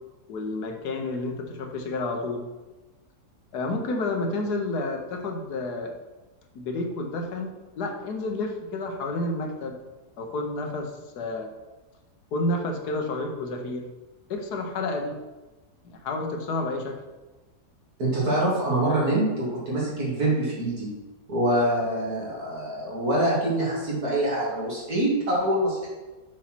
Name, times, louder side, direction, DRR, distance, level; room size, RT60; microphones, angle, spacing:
voice 1, 0.3-2.4 3.5-5.9 6.5-7.5 7.8-9.8 10.2-11.5 12.3-13.8 14.3-15.2 15.8-17.0, left 2 dB, 80° left, 3 dB, 1.5 m, -30 dB
voice 2, 18.0-20.9 21.3-25.9, right 1 dB, 65° right, -6 dB, 3.0 m, -25 dB
7.0 x 4.2 x 5.9 m, 1.2 s
omnidirectional pair, 1.7 m